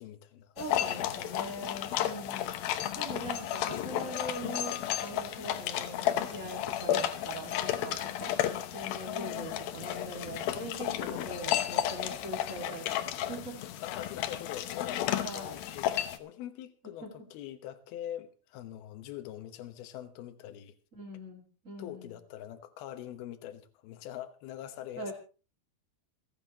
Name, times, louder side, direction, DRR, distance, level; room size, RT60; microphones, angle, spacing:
voice 1, 0.0-0.9 1.9-3.0 9.0-9.8 11.1-11.7 13.8-20.7 21.8-25.1, left 12 dB, 70° left, 2.5 m, -44 dB
voice 2, 0.5-2.5 3.0-8.4 8.7-13.6 15.2-15.6 17.0-17.1 20.9-22.1 24.9-25.1, right 1 dB, 65° right, 0.8 m, -42 dB
sound 1, 0.6-16.2, left 11 dB, 90° left, 2.1 m, -33 dB
27.5 x 10.5 x 3.0 m
omnidirectional pair, 5.6 m